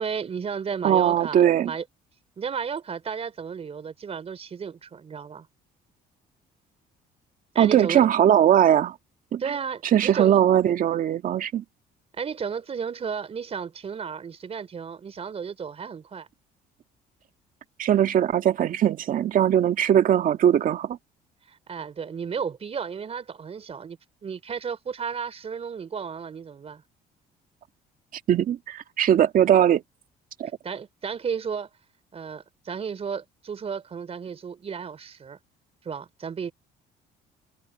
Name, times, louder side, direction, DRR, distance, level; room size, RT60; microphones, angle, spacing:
voice 1, 0.0-1.8 2.4-5.5 7.5-8.0 9.4-10.4 12.1-16.3 21.5-26.8 30.6-31.7 32.1-35.4 35.8-36.5, right 6 dB, 35° right, 4.3 m, -33 dB
voice 2, 0.8-1.7 7.6-8.9 9.3-9.4 9.9-11.6 17.8-21.0 28.3-29.8 30.4-30.5, right 10 dB, 55° right, 1.8 m, -20 dB
cardioid pair, 110°, 17 cm